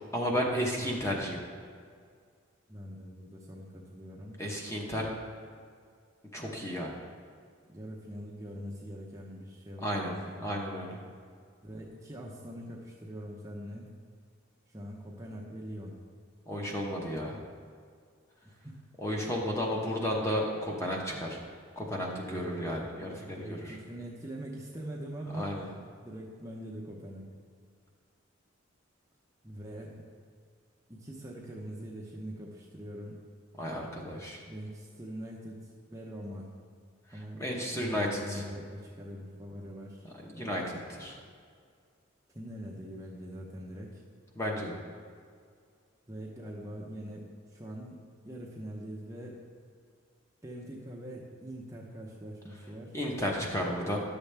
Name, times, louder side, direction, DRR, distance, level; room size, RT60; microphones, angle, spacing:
voice 1, 0.1-1.4 4.4-5.1 6.3-7.0 9.8-10.1 10.4-11.0 16.5-17.4 19.0-21.4 21.8-23.8 25.4-25.7 33.6-34.4 37.4-38.4 40.2-41.2 44.3-44.8 52.9-54.0, equal, 15° left, -1 dB, 0.9 m, -33 dB
voice 2, 2.7-4.4 7.7-10.5 11.0-11.1 11.6-14.0 14.7-16.0 18.4-18.8 22.0-22.7 23.4-25.7 26.0-27.2 29.4-30.0 30.9-33.2 34.5-35.6 35.9-36.5 37.1-37.4 37.7-40.1 40.3-40.6 42.3-44.0 46.1-48.0 48.2-49.4 50.4-53.0, equal, 15° right, -3 dB, 0.7 m, -43 dB
11.0 x 7.0 x 3.4 m, 2.1 s
head